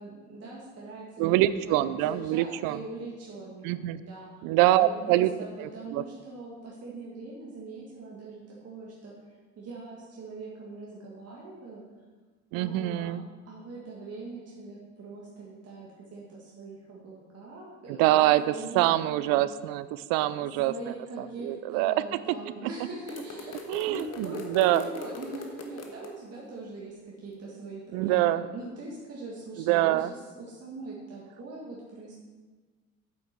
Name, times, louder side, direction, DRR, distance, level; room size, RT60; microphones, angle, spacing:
voice 1, 0.0-4.3 4.7-9.1 9.6-11.8 12.5-13.1 13.5-19.4 20.3-32.1, right 3 dB, 40° right, -5 dB, 2.0 m, -42 dB
voice 2, 1.2-2.8 3.6-4.0 4.4-5.3 5.6-6.0 12.5-13.2 17.9-22.2 23.7-24.8 27.9-28.4 29.6-30.1, right 14 dB, 60° right, 15 dB, 0.5 m, -25 dB
sound 1, 23.1-26.1, left 4 dB, 40° left, 1.5 m, -41 dB
8.2 x 7.9 x 4.4 m, 1.3 s
hypercardioid pair, 65°, 40 cm